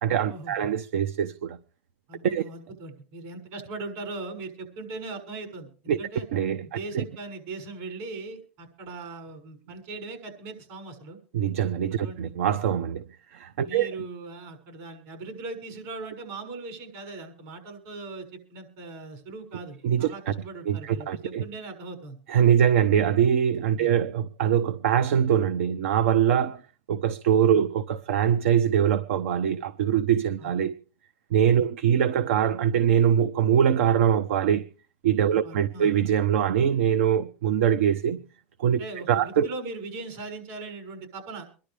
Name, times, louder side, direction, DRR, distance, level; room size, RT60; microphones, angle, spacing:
voice 1, 0.0-1.6 2.2-2.4 5.9-6.0 6.3-6.7 6.9-7.0 11.3-13.1 13.3-13.9 19.8-20.3 20.7-21.4 22.3-26.6 26.9-30.7 31.3-34.6 35.0-38.2 38.6-38.8 39.1-39.5, right 9 dB, 85° right, 0.8 m, -23 dB
voice 2, 2.1-6.3 6.6-11.2 11.9-12.2 13.6-22.2 23.8-23.9 27.5-27.6 30.4-30.5 31.5-31.7 35.3-35.9 38.8-41.5, right 3 dB, 60° right, 6.5 m, -39 dB
26.0 x 11.5 x 3.4 m
supercardioid pair, 130°, 7 cm